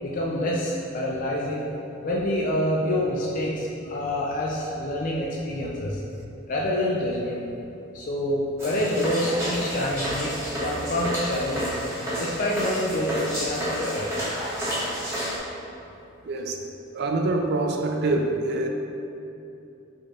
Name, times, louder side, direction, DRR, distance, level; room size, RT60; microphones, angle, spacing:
voice 1, 0.0-1.7 2.0-6.0 6.5-7.4 7.9-10.3 10.6-11.8 12.2-14.1, left 1 dB, 40° left, -4 dB, 0.4 m, -27 dB
sound 1, 8.6-15.4, equal, 15° right, 1.4 m, -30 dB
voice 2, 16.3-16.6 16.9-18.7, right 2 dB, 55° right, 2 dB, 0.4 m, -25 dB
5.2 x 4.2 x 2.4 m, 2.8 s
head